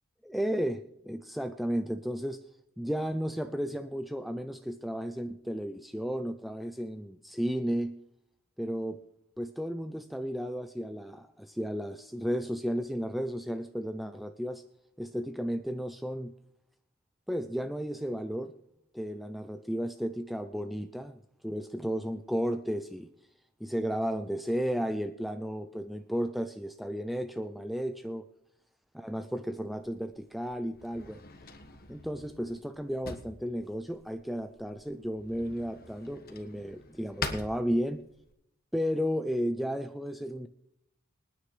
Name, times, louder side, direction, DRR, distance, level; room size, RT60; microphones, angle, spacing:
voice 1, 0.2-2.4 2.8-8.0 8.6-9.0 9.4-14.6 15.0-16.3 17.3-18.5 18.9-23.1 23.6-28.3 28.9-31.2 31.9-38.0 38.7-40.5, equal, ahead, 8 dB, 0.4 m, -33 dB
Drawer open or close, 29.6-38.3, left 4 dB, 50° left, 1.4 m, -45 dB
25.5 x 9.9 x 3.2 m, 0.79 s
head